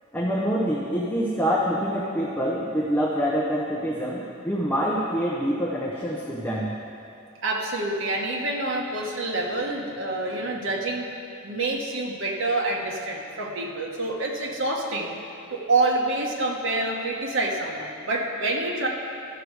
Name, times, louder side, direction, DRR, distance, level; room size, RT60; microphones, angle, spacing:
voice 1, 0.1-6.7, equal, 10° left, -4 dB, 0.8 m, -26 dB
voice 2, 7.4-11.1 11.4-15.1 15.5-18.9, right 2 dB, 60° right, -1 dB, 1.3 m, -27 dB
13.5 x 6.6 x 4.8 m, 2.6 s
head